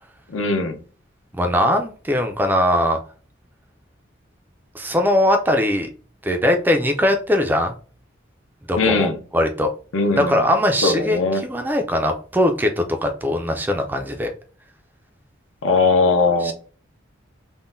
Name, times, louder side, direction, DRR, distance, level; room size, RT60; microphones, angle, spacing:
voice 1, 0.3-0.8 8.8-9.2 9.9-10.4 10.8-11.4 15.6-16.5, left 3 dB, 80° left, 0.6 m, -19 dB
voice 2, 1.4-3.0 4.7-5.9 6.2-7.7 8.7-9.7 10.2-14.3 16.4-16.5, left 1 dB, 10° right, 0.3 m, -20 dB
3.7 x 2.1 x 2.5 m
head